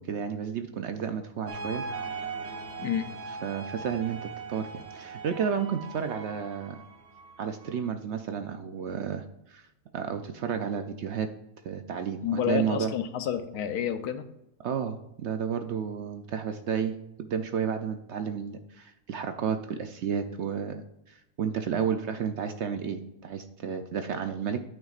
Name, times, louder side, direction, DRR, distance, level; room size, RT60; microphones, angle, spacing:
voice 1, 0.0-1.9 3.4-6.8 7.4-9.7 9.9-11.3 11.6-12.9 14.6-24.6, right 7 dB, 65° right, 7 dB, 0.7 m, -32 dB
sound 1, 1.5-7.9, right 4 dB, 50° right, 1.1 m, -40 dB
voice 2, 2.8-3.1 12.2-14.3, left 8 dB, 90° left, 10 dB, 1.2 m, -29 dB
9.3 x 8.6 x 2.4 m, 0.85 s
omnidirectional pair, 1.6 m